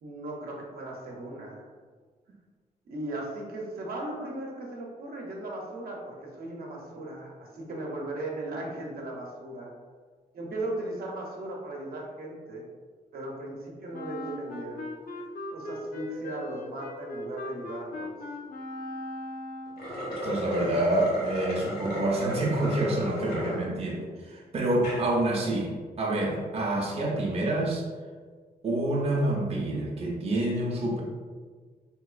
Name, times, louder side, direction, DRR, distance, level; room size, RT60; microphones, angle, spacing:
voice 1, 0.0-1.6 2.9-9.7 10.3-12.6 13.1-14.8 15.5-18.1, right 2 dB, 75° right, -1 dB, 0.7 m, -37 dB
Wind instrument woodwind instrument, 13.9-20.0, left 1 dB, 65° left, 0.5 m, -39 dB
sound 1, 19.7-23.6 24.1-24.2 24.7-25.0, equal, 85° left, 1.3 m, -33 dB
voice 2, 20.2-27.8 28.6-31.0, right 1 dB, 40° right, -3 dB, 0.5 m, -27 dB
3.7 x 2.9 x 2.4 m, 1.5 s
wide cardioid pair, 150°, 16 cm